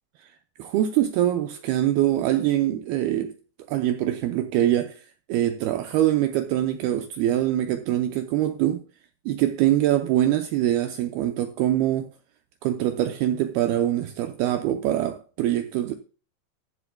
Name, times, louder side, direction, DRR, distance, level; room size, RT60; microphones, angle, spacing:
voice 1, 0.6-3.4 3.7-5.0 5.3-8.8 9.3-12.1 12.6-16.0, right 12 dB, 85° right, 2.3 m, -23 dB
14.5 x 11.0 x 2.2 m
omnidirectional pair, 5.1 m